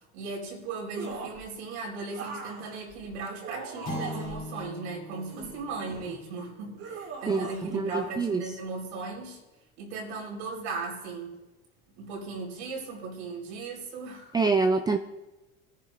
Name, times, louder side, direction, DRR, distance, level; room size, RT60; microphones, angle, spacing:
voice 1, 0.1-9.4 9.8-11.4 12.0-14.3, right 3 dB, 80° right, 0 dB, 4.1 m, -37 dB
sound 1, 1.0-1.5 2.1-4.4 5.1-6.2 6.8-7.7 7.9-8.1, right 5 dB, 55° right, 2.7 m, -40 dB
sound 2, 3.8-8.3, left 2 dB, 25° left, 3.9 m, -42 dB
voice 2, 7.7-8.4 14.3-15.0, right 4 dB, 15° right, 8 dB, 0.4 m, -25 dB
22.0 x 10.5 x 2.5 m, 1.1 s
supercardioid pair, 95°, 32 cm